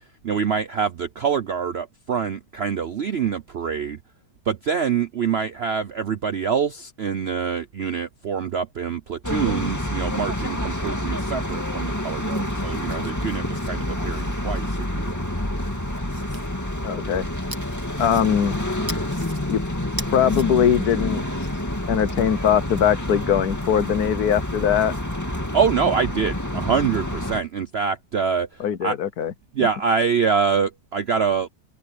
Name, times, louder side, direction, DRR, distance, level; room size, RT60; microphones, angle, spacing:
voice 1, 0.0-4.0 4.4-15.2 25.4-29.0 29.5-31.5, right 6 dB, 60° right, 0.6 m, -25 dB
sound 1, 9.2-27.4, left 1 dB, 10° left, 2.3 m, -28 dB
sound 2, 12.8-15.1 15.6-16.5 17.5-18.5 18.9-19.4 19.8-20.5, right 1 dB, 10° right, 2.0 m, -39 dB
voice 2, 16.8-17.3 18.0-18.6 19.5-19.6 20.1-21.2 21.9-24.9 28.6-29.3, left 9 dB, 65° left, 1.4 m, -21 dB
omnidirectional pair, 1.9 m